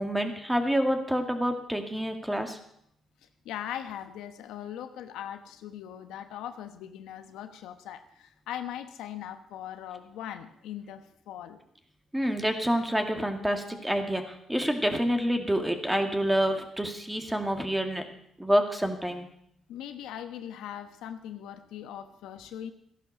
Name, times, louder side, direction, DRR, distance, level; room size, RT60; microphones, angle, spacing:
voice 1, 0.0-2.6 12.1-18.0 18.4-19.3, equal, 5° right, 5 dB, 2.2 m, -27 dB
voice 2, 3.4-11.6 19.7-22.7, left 10 dB, 90° left, 8 dB, 1.1 m, -40 dB
15.0 x 11.5 x 6.2 m, 0.72 s
cardioid pair, 90°, 0 cm